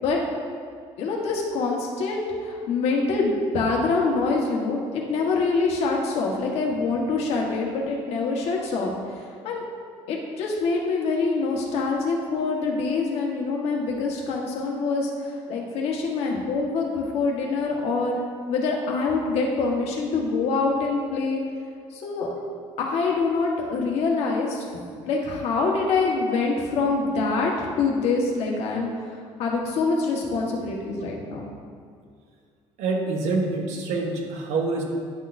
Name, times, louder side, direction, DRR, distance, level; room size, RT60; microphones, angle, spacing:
voice 1, 1.0-8.9 9.4-9.7 10.1-18.2 18.5-21.4 21.9-22.3 22.8-27.5 27.8-28.9 29.4-31.4, left 4 dB, 65° left, -1 dB, 1.3 m, -25 dB
voice 2, 32.8-34.8, right 3 dB, 75° right, 1 dB, 1.1 m, -26 dB
10.0 x 6.2 x 2.6 m, 2.1 s
cardioid pair, 155°, 12 cm